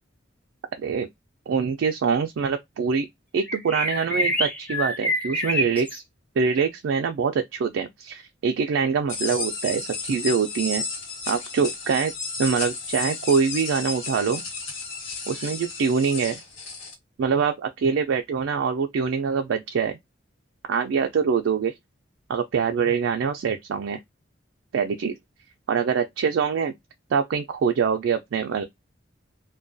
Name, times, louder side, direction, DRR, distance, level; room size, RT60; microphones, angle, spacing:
voice 1, 0.8-1.1 1.5-3.1 3.3-6.0 6.4-10.8 11.3-12.1 12.4-14.4 15.3-16.4 17.2-20.0 20.7-21.7 22.3-24.0 24.7-25.1 25.7-26.7 27.1-28.6, right 6 dB, 75° right, 0.3 m, -24 dB
sound 1, 3.4-6.0, left 1 dB, 10° left, 0.5 m, -27 dB
sound 2, 9.1-16.9, left 4 dB, 85° left, 1.2 m, -33 dB
2.3 x 2.2 x 2.5 m
head